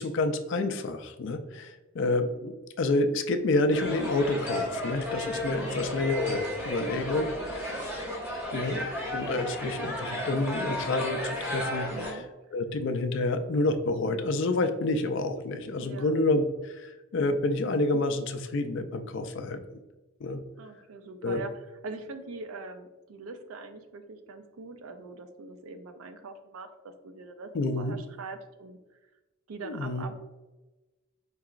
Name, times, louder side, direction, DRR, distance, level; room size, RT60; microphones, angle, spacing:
voice 1, 0.0-7.3 8.5-12.2 12.5-19.6 20.2-20.4 21.2-21.4 27.5-28.0 29.6-30.0, left 2 dB, 55° left, 8 dB, 0.3 m, -28 dB
sound 1, 3.7-12.1, left 1 dB, 10° right, 0.7 m, -33 dB
voice 2, 5.6-6.0 7.1-7.9 11.9-12.6 15.8-16.1 20.6-27.5 27.8-28.8 29.5-30.2, right 3 dB, 75° right, 8 dB, 0.4 m, -43 dB
4.6 x 2.9 x 2.4 m, 1.1 s
head